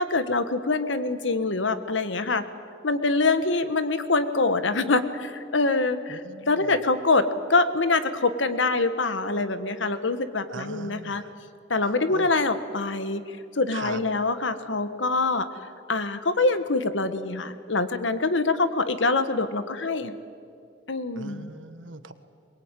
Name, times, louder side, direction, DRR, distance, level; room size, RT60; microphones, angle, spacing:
voice 1, 0.0-2.4 2.8-6.2 6.5-7.2 7.5-11.2 11.7-13.2 13.5-15.5 15.9-20.1 20.9-21.5, left 3 dB, 70° left, 11 dB, 1.4 m, -24 dB
voice 2, 6.1-6.7 10.5-11.3 12.1-12.3 13.7-14.0 21.1-22.1, right 3 dB, 80° right, 11 dB, 1.4 m, -39 dB
22.0 x 22.0 x 9.1 m, 2.4 s
head